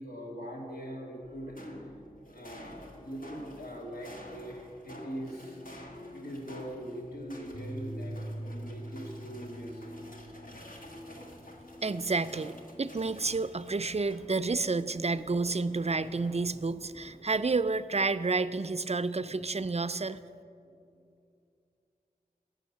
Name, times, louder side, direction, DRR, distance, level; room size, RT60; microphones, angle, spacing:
voice 1, 0.0-1.6 2.3-5.6 6.1-10.3 14.0-14.1, equal, 80° left, -2 dB, 2.2 m, -42 dB
sound 1, 1.2-14.6 15.0-17.7, equal, 60° left, 1.5 m, -50 dB
sound 2, 5.4-13.5, equal, 40° left, 1.5 m, -44 dB
voice 2, 11.8-20.2, right 3 dB, 45° right, 15 dB, 0.4 m, -30 dB
14.5 x 6.5 x 7.2 m, 2.5 s
wide cardioid pair, 40°, 16 cm